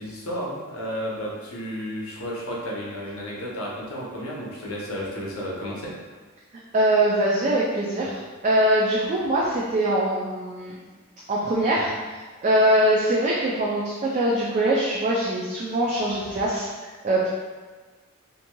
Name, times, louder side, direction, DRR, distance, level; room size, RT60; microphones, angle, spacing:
voice 1, 0.0-5.9, equal, 85° left, -4 dB, 0.7 m, -32 dB
voice 2, 6.7-10.7 11.3-17.3, right 1 dB, 35° right, -5 dB, 0.3 m, -23 dB
3.0 x 2.5 x 2.2 m, 1.4 s
head